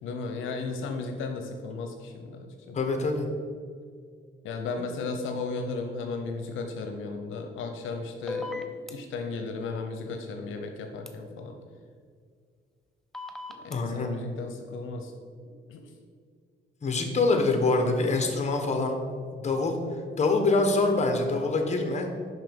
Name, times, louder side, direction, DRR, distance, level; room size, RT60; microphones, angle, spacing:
voice 1, 0.0-2.8 4.4-8.6 8.9-11.6 13.6-15.1 15.7-15.9, left 3 dB, 80° left, 4 dB, 0.7 m, -35 dB
voice 2, 2.7-3.3 13.7-14.1 16.8-19.0 19.3-19.8 20.2-22.1, left 3 dB, 35° left, 4 dB, 1.2 m, -25 dB
sound 1, 8.3-8.9 11.1-11.2 13.1-13.8, left 3 dB, ahead, 0.7 m, -35 dB
5.7 x 5.6 x 5.3 m, 2.1 s
cardioid pair, 90°, 20 cm